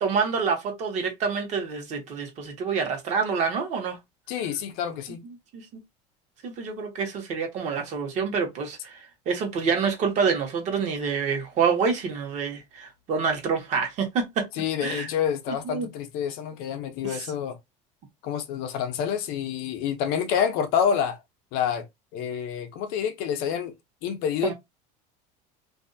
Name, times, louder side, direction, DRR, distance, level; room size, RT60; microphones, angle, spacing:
voice 1, 0.0-4.0 5.5-5.7 6.4-9.0 9.3-14.5 14.8-15.1 15.6-15.9 17.0-17.3 24.4-24.5, right 5 dB, 45° right, 1.0 m, -27 dB
voice 2, 4.3-5.2 14.5-17.6 18.2-21.2 21.5-21.9 22.1-23.7 24.0-24.5, left 8 dB, 65° left, 0.7 m, -28 dB
2.6 x 2.2 x 2.6 m
cardioid pair, 140°, 17 cm